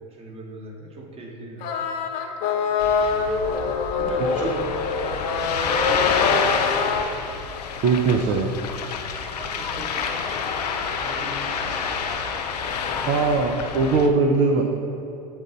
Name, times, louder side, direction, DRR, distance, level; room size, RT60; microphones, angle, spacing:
voice 1, 0.0-2.0 2.6-3.3 4.0-7.0 8.1-8.5 9.3-10.2 10.7-12.3 12.8-13.6, right 1 dB, 30° right, 1 dB, 1.4 m, -40 dB
sound 1, 1.6-7.1, left 5 dB, 55° left, 1.0 m, -24 dB
Ocean, 2.8-14.1, left 6 dB, 85° left, 0.6 m, -28 dB
voice 2, 7.8-8.5 13.1-14.6, right 4 dB, 45° right, 3 dB, 0.6 m, -20 dB
8.7 x 3.9 x 4.0 m, 2.7 s
hypercardioid pair, 95°, 20 cm